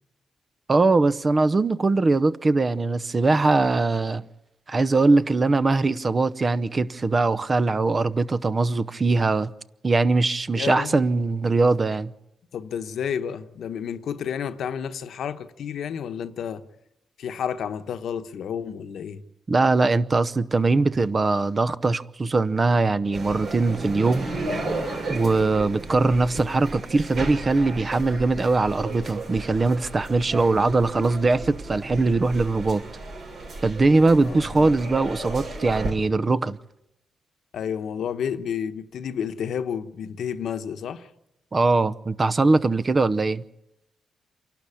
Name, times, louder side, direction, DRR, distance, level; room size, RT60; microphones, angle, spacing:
voice 1, 0.7-4.2 4.7-9.5 9.8-12.1 19.5-24.3 25.1-32.8 33.6-36.6 41.5-43.4, right 3 dB, 35° right, 0.7 m, -21 dB
voice 2, 10.5-11.0 12.5-16.6 17.2-19.2 34.2-34.7 37.5-41.1, left 8 dB, 75° left, 1.1 m, -31 dB
sound 1, 23.1-35.9, right 2 dB, 65° right, 6.5 m, -34 dB
27.5 x 12.0 x 8.5 m
cardioid pair, 95°, 0 cm